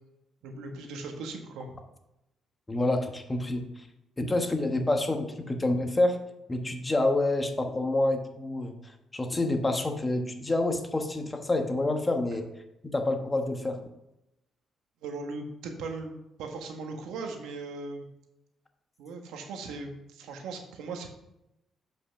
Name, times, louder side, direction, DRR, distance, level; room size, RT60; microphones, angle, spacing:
voice 1, 0.4-1.7 15.0-18.1 19.0-21.1, right 3 dB, 90° right, 4 dB, 1.4 m, -38 dB
voice 2, 2.7-3.9 4.2-6.2 6.5-8.7 9.1-12.5 12.8-13.8, left 2 dB, 20° left, 5 dB, 1.3 m, -27 dB
7.9 x 5.8 x 5.9 m, 0.89 s
cardioid pair, 90°, 0 cm